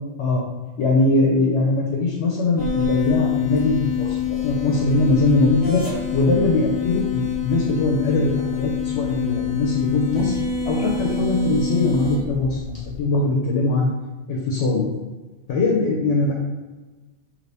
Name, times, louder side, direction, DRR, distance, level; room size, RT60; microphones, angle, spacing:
voice 1, 0.8-5.8 6.1-10.4 10.7-13.9 14.3-14.9 15.5-16.3, left 2 dB, 70° left, -2 dB, 0.9 m, -21 dB
sound 1, 2.6-13.0, left 7 dB, 40° left, 1.1 m, -26 dB
2.8 x 2.6 x 3.3 m, 1.2 s
omnidirectional pair, 1.3 m